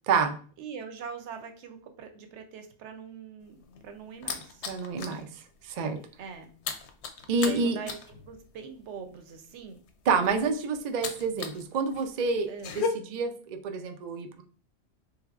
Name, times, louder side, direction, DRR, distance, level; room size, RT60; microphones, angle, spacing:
voice 1, 0.6-4.7 6.2-6.5 7.4-9.8 12.5-12.8, right 6 dB, 70° right, 6 dB, 0.8 m, -43 dB
sound 1, 3.4-5.2 5.6-5.8 6.1-11.6 11.9-12.9, left 6 dB, 70° left, 0.8 m, -36 dB
voice 2, 4.7-5.3 5.6-6.0 7.3-7.8 10.1-12.5 12.7-14.4, right 4 dB, 90° right, 6 dB, 0.3 m, -28 dB
3.3 x 3.3 x 2.3 m, 0.42 s
omnidirectional pair, 1.3 m